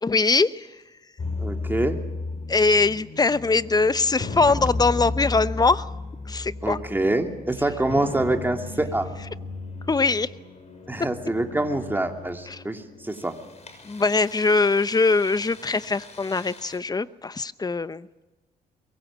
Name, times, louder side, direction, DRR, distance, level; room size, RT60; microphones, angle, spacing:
voice 1, 0.0-0.7 2.5-5.9 6.3-6.8 9.9-10.3 12.5-12.6 13.8-18.1, left 3 dB, 25° left, 15 dB, 0.9 m, -22 dB
sound 1, 1.2-16.8, left 2 dB, 45° left, 6.4 m, -35 dB
voice 2, 1.4-2.0 6.6-9.1 10.9-13.3, right 2 dB, 10° right, 4 dB, 2.9 m, -25 dB
23.5 x 22.0 x 7.5 m, 1.1 s
cardioid pair, 80°, 16 cm